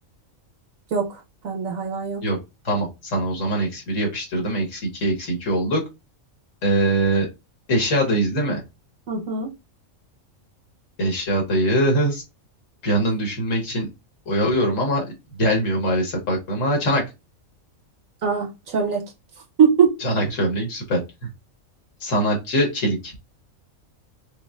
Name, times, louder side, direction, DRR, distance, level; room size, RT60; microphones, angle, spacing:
voice 1, 0.9-2.2 9.1-9.5 18.2-19.0 19.6-19.9, right 6 dB, 80° right, 1.4 m, -21 dB
voice 2, 2.6-5.8 6.6-7.3 7.7-8.6 11.0-12.2 12.8-13.9 14.3-15.0 15.4-17.0 20.0-21.0 22.0-23.1, right 1 dB, 70° left, 1.5 m, -22 dB
5.2 x 2.1 x 2.3 m
omnidirectional pair, 1.4 m